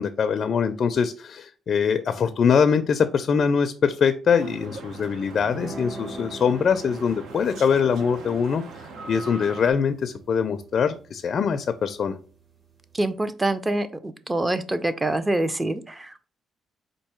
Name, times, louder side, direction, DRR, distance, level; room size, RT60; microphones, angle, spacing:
voice 1, 0.0-8.6 9.1-12.1, left 6 dB, 55° left, 9 dB, 0.4 m, -23 dB
sound 1, 4.3-9.7, right 3 dB, 80° right, 0.8 m, -41 dB
sound 2, 5.4-13.1, right 2 dB, 45° right, 2.1 m, -44 dB
voice 2, 12.9-16.3, right 2 dB, 15° right, 11 dB, 0.5 m, -26 dB
4.5 x 2.6 x 4.3 m, 0.39 s
cardioid pair, 90°, 0 cm